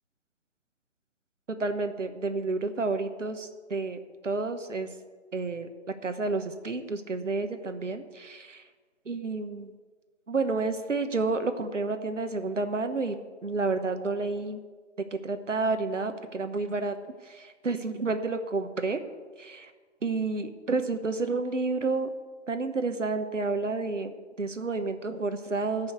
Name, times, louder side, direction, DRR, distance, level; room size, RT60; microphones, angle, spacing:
voice 1, 1.5-4.9 5.3-5.7 6.0-8.6 9.1-9.7 10.3-13.2 13.4-14.6 15.1-17.0 17.2-19.0 19.4-19.7 20.0-22.1 22.5-25.9, right 3 dB, 80° right, 8 dB, 1.2 m, -30 dB
14.5 x 5.6 x 8.1 m, 1.4 s
figure-of-eight pair, 140°, 36 cm